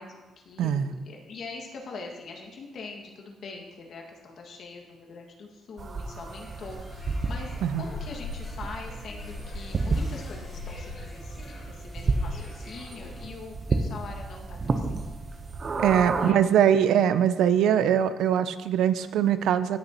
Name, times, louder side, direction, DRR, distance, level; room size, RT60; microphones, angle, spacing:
voice 1, 0.0-14.9 16.1-16.4, left 4 dB, 65° left, 1 dB, 1.9 m, -43 dB
voice 2, 0.6-0.9 7.6-7.8 15.8-19.8, right 9 dB, 80° right, 13 dB, 0.4 m, -22 dB
sound 1, 5.8-16.3, right 3 dB, 40° right, 0.9 m, -32 dB
sound 2, 6.2-13.4, left 3 dB, 40° left, 3.0 m, -42 dB
17.5 x 6.6 x 3.0 m, 1.3 s
cardioid pair, 90°, 0 cm